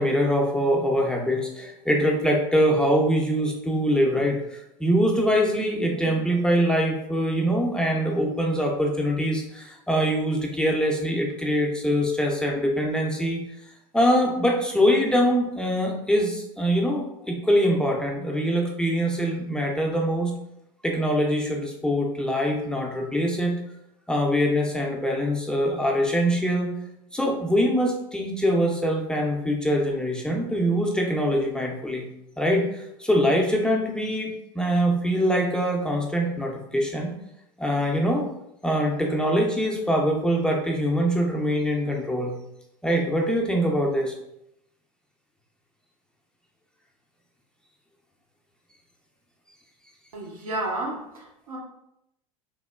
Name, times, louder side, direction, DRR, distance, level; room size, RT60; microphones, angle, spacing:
voice 1, 0.0-13.4 13.9-20.3 20.8-23.6 24.1-26.7 27.1-32.0 32.4-37.1 37.6-38.3 38.6-42.3 42.8-44.1, equal, 5° left, 0 dB, 0.4 m, -23 dB
voice 2, 50.1-51.6, right 2 dB, 85° right, -2 dB, 0.7 m, -31 dB
3.0 x 2.0 x 2.2 m, 0.81 s
hypercardioid pair, 90°, 18 cm